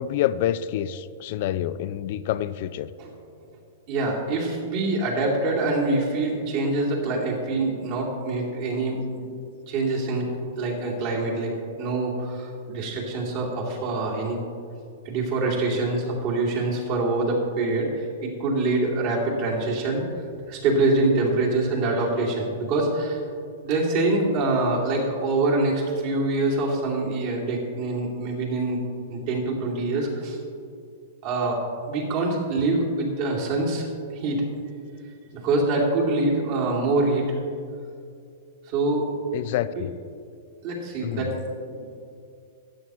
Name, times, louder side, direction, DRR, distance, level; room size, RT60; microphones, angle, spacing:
voice 1, 0.0-2.9 39.3-39.9 41.0-41.3, left 11 dB, 55° left, 16 dB, 0.4 m, -27 dB
voice 2, 3.9-9.3 9.7-10.3 10.6-14.4 15.0-20.1 20.5-23.2 23.6-28.8 29.1-30.4 31.2-31.6 31.9-33.9 34.1-34.4 35.3-37.3 38.7-39.1 39.7-39.8 40.6-41.8, right 2 dB, 50° right, -3 dB, 2.5 m, -25 dB
13.0 x 8.8 x 3.0 m, 2.4 s
hypercardioid pair, 130°, 0 cm